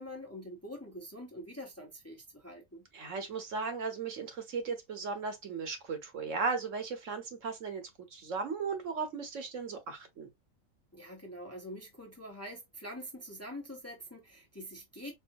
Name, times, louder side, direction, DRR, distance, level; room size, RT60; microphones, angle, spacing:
voice 1, 0.0-2.8 10.9-15.2, equal, 15° left, 0.8 m, -45 dB
voice 2, 2.9-10.3, right 5 dB, 70° right, 1.3 m, -36 dB
4.6 x 2.6 x 2.6 m
omnidirectional pair, 1.4 m